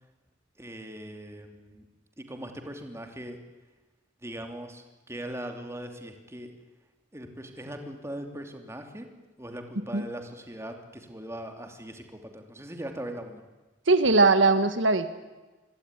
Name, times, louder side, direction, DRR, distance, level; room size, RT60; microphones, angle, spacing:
voice 1, 0.6-1.8 2.2-3.4 4.2-6.5 7.1-9.1 9.4-13.4, right 1 dB, 15° right, 5 dB, 2.9 m, -40 dB
voice 2, 13.9-15.1, right 3 dB, 75° right, 10 dB, 1.6 m, -20 dB
25.5 x 23.5 x 9.8 m, 1.2 s
head